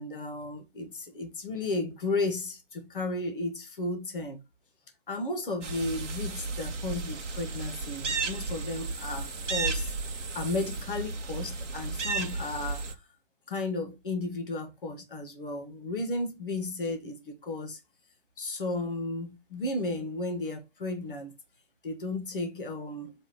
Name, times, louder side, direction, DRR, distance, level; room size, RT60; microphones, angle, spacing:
voice 1, 0.0-4.4 5.1-9.9 10.3-13.0 13.5-17.8 18.4-21.3 21.8-23.1, left 2 dB, 5° left, 0.7 m, -34 dB
sound 1, 5.6-12.9, right 3 dB, 70° right, 1.5 m, -34 dB
7.6 x 2.8 x 5.7 m
hypercardioid pair, 175°, 38 cm